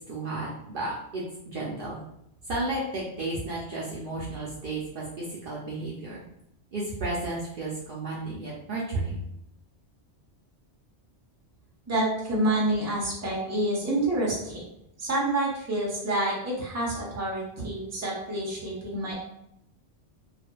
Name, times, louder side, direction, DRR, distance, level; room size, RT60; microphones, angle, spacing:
voice 1, 0.1-2.0 2.5-6.2 6.7-9.2, right 2 dB, 60° right, -5 dB, 0.7 m, -33 dB
voice 2, 11.9-14.6 15.0-19.1, right 1 dB, 15° right, -5 dB, 0.6 m, -28 dB
2.5 x 2.4 x 2.2 m, 0.78 s
omnidirectional pair, 1.2 m